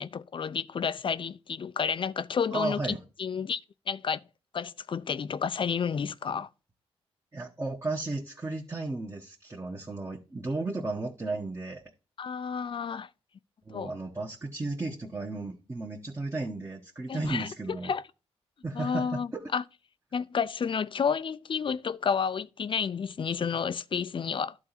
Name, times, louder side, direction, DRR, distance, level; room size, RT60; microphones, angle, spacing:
voice 1, 0.0-3.6 3.9-4.2 4.5-6.5 12.2-13.1 13.7-13.9 17.1-17.5 17.8-18.0 18.7-19.6 20.1-24.5, left 6 dB, 50° left, 0.5 m, -31 dB
voice 2, 2.5-3.0 7.3-11.8 13.6-17.9 18.6-19.5, right 2 dB, 25° right, 1.3 m, -34 dB
11.5 x 3.9 x 4.2 m
supercardioid pair, 50°, 11 cm